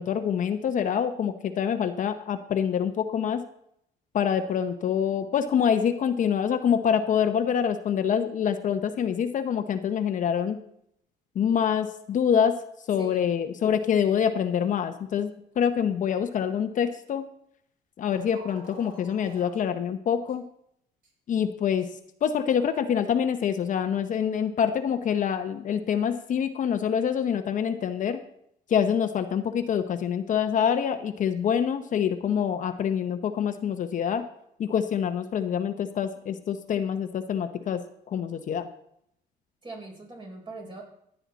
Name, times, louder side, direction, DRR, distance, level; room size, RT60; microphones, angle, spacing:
voice 1, 0.0-3.4 4.1-10.6 11.3-12.6 12.9-17.3 18.0-20.4 21.3-21.9 22.2-28.2 28.7-34.2 34.6-37.8 38.1-38.7, left 8 dB, 50° left, 8 dB, 0.8 m, -26 dB
voice 2, 13.0-13.3 39.6-40.8, right 2 dB, 30° right, 1 dB, 3.9 m, -41 dB
sound 1, 18.1-19.6 20.3-20.4 21.0-21.1 21.8-21.9, right 1 dB, 55° right, 5.9 m, -49 dB
15.0 x 8.9 x 4.0 m, 0.74 s
cardioid pair, 110°, 17 cm